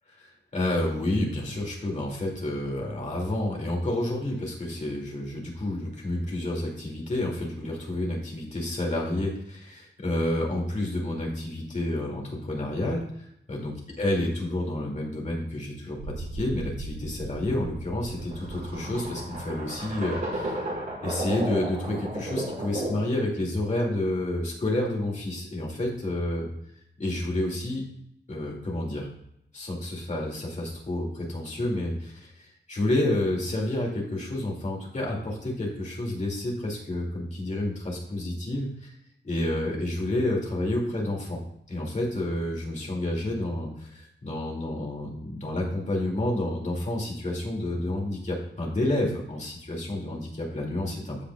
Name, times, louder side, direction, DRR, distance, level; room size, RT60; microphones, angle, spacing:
voice 1, 0.5-13.0 13.5-20.6 21.0-26.5 27.0-27.8 28.3-29.1 29.5-38.9 39.2-41.4 41.7-51.2, left 1 dB, 40° left, -2 dB, 2.2 m, -29 dB
sound 1, 16.0-23.1, right 1 dB, 55° right, 3.3 m, -34 dB
14.5 x 5.0 x 2.3 m, 0.75 s
wide cardioid pair, 155°, 20 cm